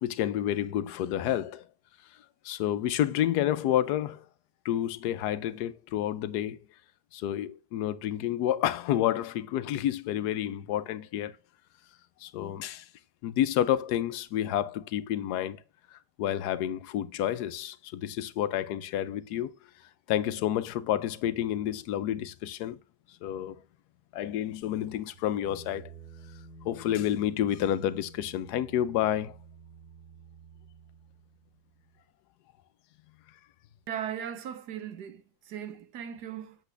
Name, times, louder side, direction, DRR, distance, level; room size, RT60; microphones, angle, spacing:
voice 1, 0.0-1.6 2.4-4.3 4.6-6.6 7.1-11.3 12.2-12.9 13.2-15.6 15.9-19.5 20.1-22.8 23.2-23.6 24.1-25.9 26.6-29.4, left 11 dB, 80° left, 1.2 m, -29 dB
guitar open E Reverse reverb, 24.6-32.0, right 3 dB, 50° right, 2.5 m, -51 dB
voice 2, 33.9-36.6, right 9 dB, 90° right, 1.5 m, -38 dB
8.2 x 6.9 x 3.3 m
omnidirectional pair, 1.7 m